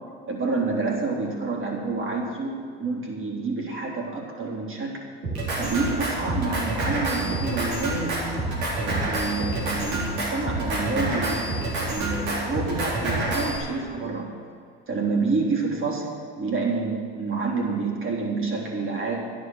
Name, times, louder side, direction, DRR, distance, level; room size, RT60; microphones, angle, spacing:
voice 1, 0.3-5.0 5.6-8.5 8.8-11.5 11.8-14.3 14.9-19.2, right 3 dB, 40° right, -2 dB, 3.6 m, -28 dB
Drum kit, 5.2-13.6, right 2 dB, 80° right, 3.9 m, -27 dB
11.5 x 10.5 x 6.3 m, 2.3 s
hypercardioid pair, 75°, 32 cm